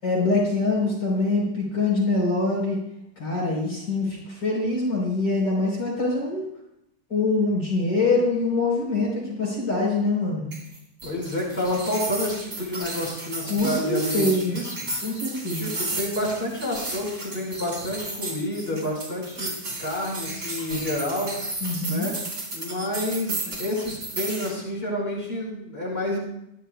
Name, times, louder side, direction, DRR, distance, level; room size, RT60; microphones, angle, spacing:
voice 1, 0.0-2.8 3.2-6.5 7.1-10.5 13.4-14.6 15.0-15.7 21.6-22.1, left 2 dB, 80° left, -3 dB, 4.8 m, -24 dB
sound 1, 10.5-24.5, right 2 dB, 55° right, 4.2 m, -34 dB
voice 2, 11.0-14.7 15.5-19.5 19.8-21.3 21.8-22.1 22.5-26.2, left 1 dB, 30° left, -4 dB, 5.6 m, -29 dB
24.5 x 11.0 x 2.3 m, 0.79 s
omnidirectional pair, 1.9 m